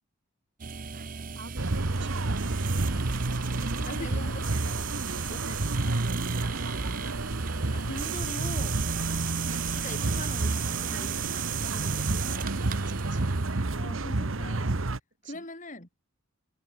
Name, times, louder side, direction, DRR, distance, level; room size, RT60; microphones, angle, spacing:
sound 1, 0.6-13.7, right 8 dB, 40° right, 0.6 m, -36 dB
voice 1, 0.9-2.9 3.4-4.3 4.9-7.3 12.7-13.3 15.2-15.4, right 1 dB, 55° right, 5.9 m, -44 dB
sound 2, 1.6-15.0, right 2 dB, 70° right, 1.2 m, -30 dB
voice 2, 3.8-4.9 5.3-5.5 7.7-8.8 9.5-12.5 13.7-14.9 15.2-15.9, left 1 dB, 35° left, 4.5 m, -42 dB
head